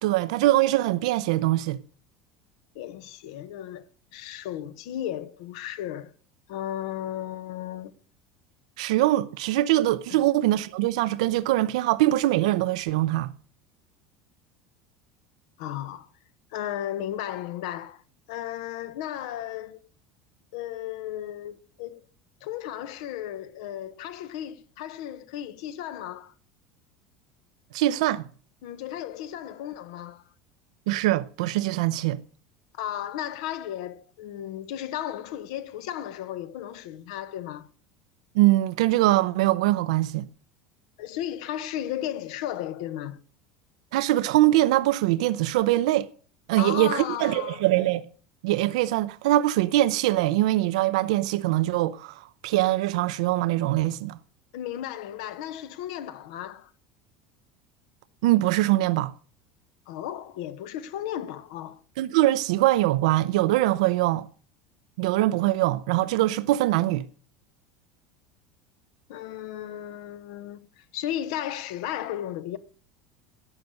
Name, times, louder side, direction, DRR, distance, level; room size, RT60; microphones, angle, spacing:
voice 1, 0.0-1.8 8.8-13.3 27.7-28.3 30.9-32.2 38.3-40.3 43.9-46.1 46.5-48.0 48.4-54.2 58.2-59.1 62.0-64.3 65.0-67.0, right 16 dB, 85° right, 0.5 m, -23 dB
voice 2, 2.7-3.9 4.1-6.1 6.5-7.9 10.1-10.2 15.6-16.1 16.5-18.0 18.3-19.9 20.5-22.1 22.4-26.3 28.6-30.2 32.8-37.7 41.0-43.2 46.6-47.6 54.5-56.7 59.9-61.8 69.1-72.6, left 11 dB, 80° left, 1.0 m, -34 dB
12.0 x 6.5 x 8.1 m
supercardioid pair, 135°, 3 cm